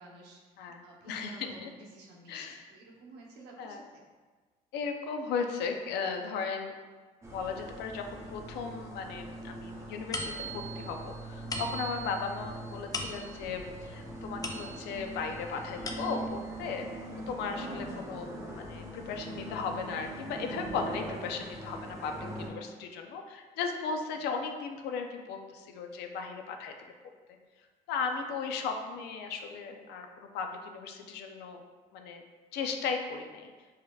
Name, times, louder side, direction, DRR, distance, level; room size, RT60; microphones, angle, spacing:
voice 1, 0.0-4.1 12.1-12.3 17.1-17.9 24.1-24.3 31.0-31.2, right 2 dB, 85° right, -1 dB, 0.8 m, -53 dB
voice 2, 0.6-1.7 2.3-2.6 3.6-3.8 4.7-6.7 7.3-16.9 17.3-26.7 27.9-31.6 31.9-32.2 32.5-33.5, left 5 dB, 80° left, 5 dB, 0.5 m, -36 dB
sound 1, 7.2-22.5, right 1 dB, 15° right, 0.7 m, -42 dB
sound 2, 10.1-15.1 15.6-16.4, left 1 dB, 20° left, 0.4 m, -40 dB
4.9 x 2.8 x 2.3 m, 1.4 s
cardioid pair, 110°, 17 cm